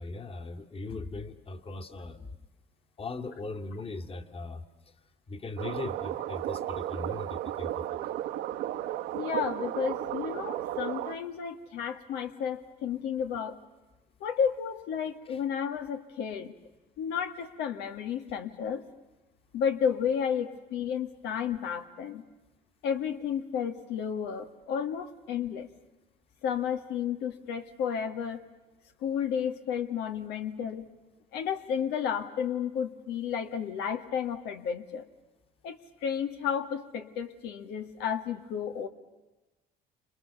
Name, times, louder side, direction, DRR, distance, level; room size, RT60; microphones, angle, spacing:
voice 1, 0.0-2.3 3.0-4.6 5.3-8.0 15.3-15.4, left 3 dB, 35° left, 6 dB, 2.2 m, -39 dB
sound 1, 5.6-11.2, right 13 dB, 90° right, 1.4 m, -34 dB
voice 2, 9.1-13.6 14.2-16.5 17.0-18.8 19.5-22.2 22.8-25.7 26.4-28.4 29.0-30.9 31.3-35.1 35.6-38.9, left 7 dB, 90° left, 7 dB, 1.9 m, -32 dB
30.0 x 27.0 x 7.0 m, 1.1 s
cardioid pair, 110°, 17 cm